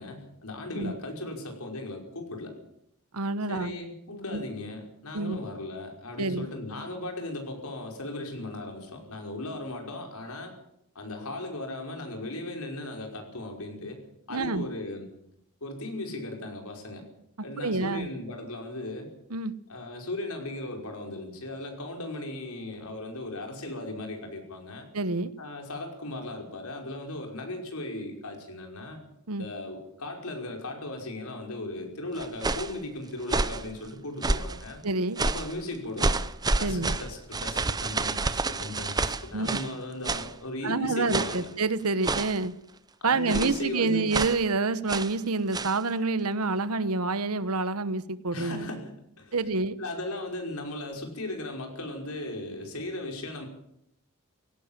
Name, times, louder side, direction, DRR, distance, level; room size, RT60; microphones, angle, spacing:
voice 1, 0.0-2.5 3.5-10.5 11.0-14.0 14.3-15.1 15.6-17.0 17.4-19.1 19.7-24.9 25.4-29.0 29.4-34.8 35.2-36.2 36.6-41.5 43.0-44.1 48.3-49.4 49.8-53.5, left 2 dB, 85° left, 2 dB, 5.5 m, -37 dB
voice 2, 3.1-3.7 4.3-4.4 5.1-5.4 6.2-6.5 14.3-14.7 17.6-18.1 19.3-19.5 24.9-25.3 29.3-29.4 34.8-35.2 36.6-36.9 39.3-39.5 40.6-42.5 43.0-48.7 49.3-49.8, right 3 dB, 90° right, 15 dB, 1.1 m, -28 dB
sound 1, 32.2-32.8 33.2-33.7 34.2-34.6 35.2-35.5 36.0-39.7 40.0-40.3 41.1-41.5 42.0-42.4 43.3-43.6 44.1-44.4 44.9-45.2 45.5-45.8, right 3 dB, 20° right, 0.7 m, -29 dB
17.5 x 17.0 x 9.0 m, 0.75 s
head